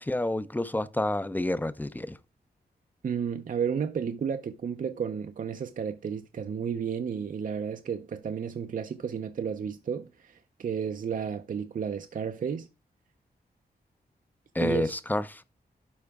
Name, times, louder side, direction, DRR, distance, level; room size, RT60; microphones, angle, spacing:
voice 1, 0.0-2.2 14.5-15.4, left 1 dB, 10° left, 0.6 m, -29 dB
voice 2, 3.0-12.7 14.6-15.0, right 7 dB, 55° right, 0.6 m, -32 dB
12.0 x 4.9 x 3.5 m
wide cardioid pair, 150°, 17 cm